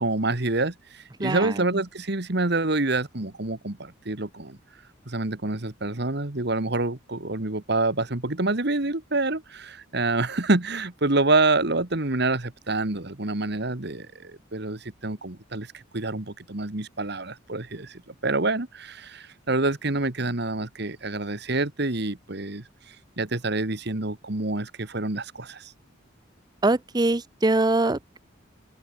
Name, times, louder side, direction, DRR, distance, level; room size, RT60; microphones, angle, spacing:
voice 1, 0.0-4.6 5.1-25.7, right 2 dB, 55° right, 1.8 m, -27 dB
voice 2, 1.2-1.8 26.6-28.2, right 2 dB, 20° right, 0.6 m, -23 dB
open air
head